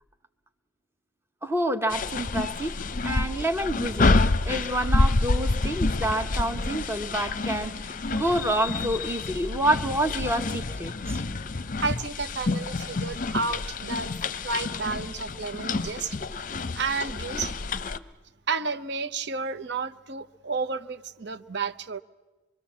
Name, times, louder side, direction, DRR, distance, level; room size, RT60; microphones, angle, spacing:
voice 1, 1.4-4.2 4.4-11.2, right 1 dB, 15° right, 1.1 m, -28 dB
sound 1, 1.9-18.0, left 3 dB, 40° left, 0.7 m, -28 dB
voice 2, 11.8-14.1 14.4-16.2 16.7-17.5 18.5-22.0, right 4 dB, 60° right, 0.9 m, -31 dB
25.5 x 23.0 x 7.3 m
head